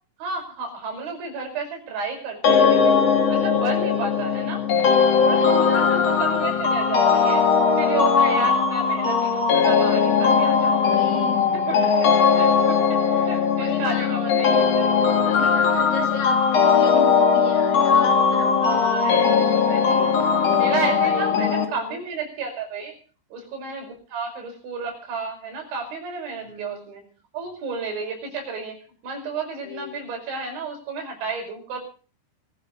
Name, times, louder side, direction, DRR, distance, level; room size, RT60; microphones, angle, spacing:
voice 1, 0.2-3.0 3.3-4.6 5.2-7.5 7.8-10.8 11.5-14.9 15.6-15.7 18.6-20.1 20.6-23.0 23.3-27.0 27.3-28.8 29.0-31.8, right 4 dB, 75° right, 3 dB, 7.8 m, -32 dB
sound 1, 2.4-21.7, left 6 dB, 40° left, 3.0 m, -19 dB
voice 2, 5.3-6.2 10.8-11.9 13.6-14.4 15.3-19.3 19.7-20.1 20.6-20.7 21.0-22.0 26.4-26.9 29.6-30.0, left 4 dB, 75° left, 1 dB, 6.6 m, -35 dB
22.5 x 14.5 x 4.0 m, 0.39 s
omnidirectional pair, 5.3 m